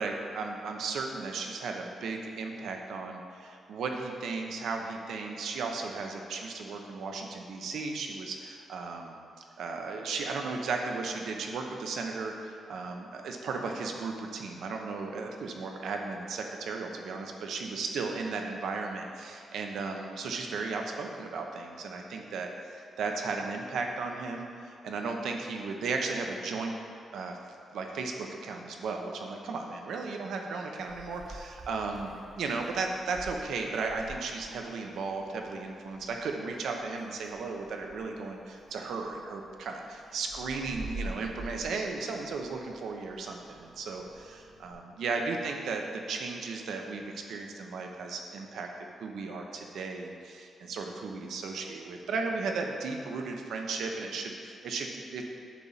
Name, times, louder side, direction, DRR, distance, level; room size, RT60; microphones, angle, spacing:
voice 1, 0.0-9.2 9.6-26.8 27.1-27.4 27.7-55.2, right 4 dB, 80° right, 2 dB, 0.9 m, -35 dB
Meow, 30.8-44.7, right 1 dB, 60° right, 1.7 m, -48 dB
9.0 x 4.2 x 7.2 m, 2.4 s
cardioid pair, 135°, 0 cm